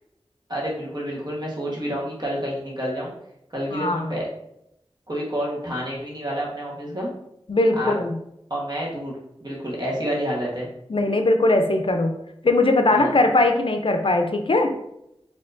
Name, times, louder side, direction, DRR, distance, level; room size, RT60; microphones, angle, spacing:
voice 1, 0.5-3.1 3.5-4.3 5.1-7.1 7.8-8.0 8.5-9.1 9.4-10.7 12.9-13.1, equal, 45° right, -3 dB, 1.2 m, -29 dB
voice 2, 3.7-4.1 7.5-8.2 10.9-12.1 12.4-14.7, left 2 dB, 60° left, 4 dB, 0.5 m, -20 dB
4.4 x 2.8 x 2.6 m, 0.80 s
wide cardioid pair, 55°, 10 cm